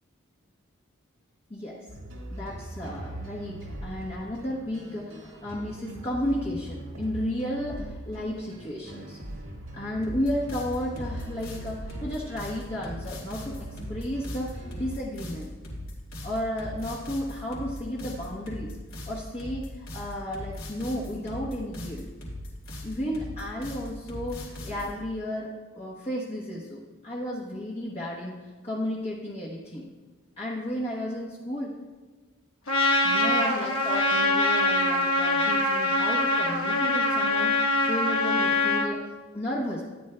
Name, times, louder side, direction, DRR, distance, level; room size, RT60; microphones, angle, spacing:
sound 1, 1.9-15.0, right 1 dB, 70° right, 1.7 m, -41 dB
voice 1, 2.3-9.2 9.7-15.5 16.2-18.7 19.1-22.0 22.8-29.9 30.4-31.7 33.0-39.0 39.3-39.8, left 1 dB, 30° left, -5 dB, 1.0 m, -33 dB
sound 2, 10.0-24.9, left 1 dB, 65° left, 3.3 m, -39 dB
Trumpet, 32.7-38.9, left 2 dB, 85° left, 1.1 m, -24 dB
13.0 x 10.0 x 2.2 m, 1.3 s
head